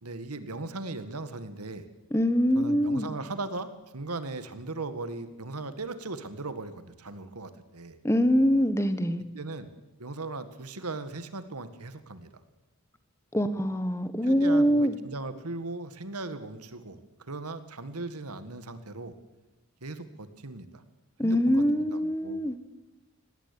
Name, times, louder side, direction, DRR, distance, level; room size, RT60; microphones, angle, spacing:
voice 1, 0.0-1.9 2.6-8.0 9.3-9.7 10.0-12.4 14.2-17.0 17.3-19.1 19.8-20.8 21.2-22.4, right 3 dB, 90° right, 11 dB, 1.8 m, -38 dB
voice 2, 2.1-3.1 8.0-9.2 13.3-15.0 21.2-22.6, equal, 10° left, 11 dB, 1.2 m, -24 dB
19.0 x 16.5 x 10.0 m, 1.1 s
head